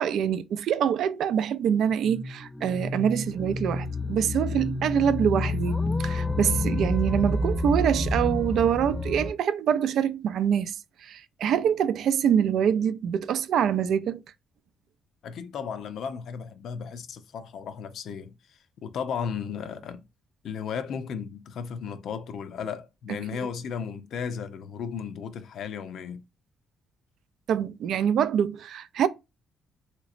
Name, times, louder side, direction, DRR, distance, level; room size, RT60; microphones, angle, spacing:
voice 1, 0.0-10.8 11.0-14.2 27.5-29.1, right 8 dB, 75° right, 0.4 m, -25 dB
sound 1, 1.9-9.3, left 1 dB, 15° left, 0.4 m, -29 dB
voice 2, 15.2-20.0 20.4-26.2, left 6 dB, 70° left, 0.5 m, -35 dB
3.1 x 2.9 x 2.5 m
cardioid pair, 90°, 0 cm